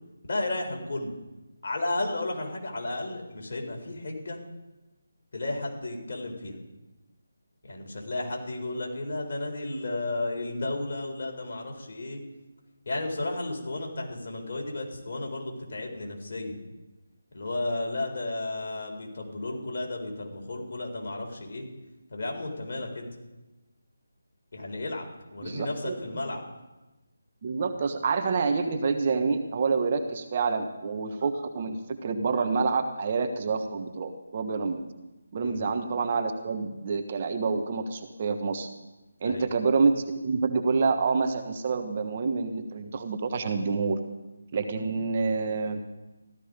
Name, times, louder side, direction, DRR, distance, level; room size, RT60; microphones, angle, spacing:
voice 1, 0.2-1.1 1.6-4.4 5.3-6.6 7.6-12.2 12.9-16.6 17.3-21.7 22.1-23.1 24.5-25.1 25.3-26.4 35.4-35.7 39.2-39.5, left 2 dB, 50° left, 1 dB, 4.2 m, -33 dB
voice 2, 25.4-25.9 27.4-34.8 35.3-38.7 39.2-44.0 44.5-45.8, right 4 dB, 35° right, 7 dB, 1.2 m, -27 dB
15.0 x 13.0 x 5.2 m, 1.1 s
figure-of-eight pair, 165°, 0 cm